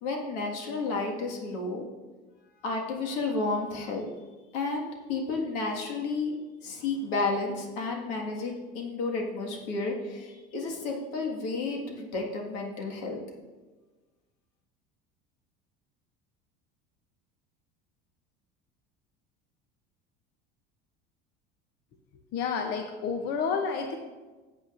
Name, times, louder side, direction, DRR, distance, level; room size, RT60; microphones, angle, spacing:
voice 1, 0.0-1.9 2.6-4.1 4.5-13.2, left 3 dB, 85° left, 1 dB, 1.7 m, -32 dB
voice 2, 22.3-24.0, left 5 dB, 50° left, 5 dB, 0.7 m, -30 dB
13.5 x 8.0 x 2.5 m, 1.3 s
cardioid pair, 160°, 21 cm